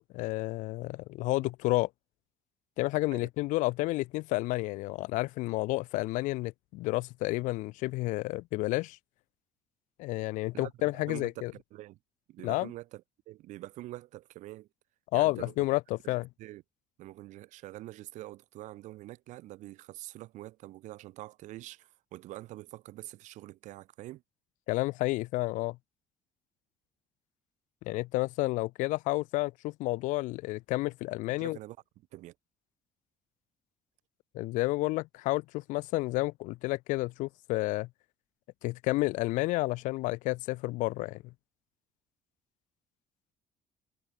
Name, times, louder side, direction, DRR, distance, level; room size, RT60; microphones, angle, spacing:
voice 1, 0.0-1.9 2.8-9.0 10.0-11.5 12.4-12.7 15.1-16.3 24.7-25.8 27.8-31.6 34.3-37.9 38.6-41.2, left 20 dB, 85° left, 0.4 m, -30 dB
voice 2, 10.5-12.0 12.3-14.7 15.1-15.7 16.0-16.6 17.0-24.2 31.4-31.8 32.1-32.3, right 16 dB, 75° right, 5.4 m, -45 dB
cardioid pair, 165°, 13 cm